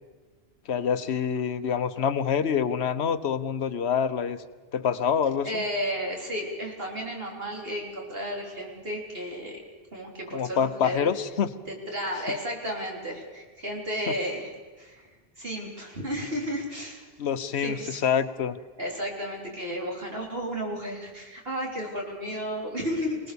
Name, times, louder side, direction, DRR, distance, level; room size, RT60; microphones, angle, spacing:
voice 1, 0.7-4.4 4.7-5.6 10.3-11.5 14.1-14.2 17.2-18.6, left 7 dB, 80° left, 12 dB, 1.1 m, -26 dB
voice 2, 5.4-9.6 9.9-11.1 11.7-14.5 14.8-15.1 15.4-17.0 17.6-18.0 18.8-23.3, equal, 65° right, -1 dB, 4.1 m, -33 dB
26.0 x 18.5 x 6.9 m, 1.3 s
omnidirectional pair, 1.1 m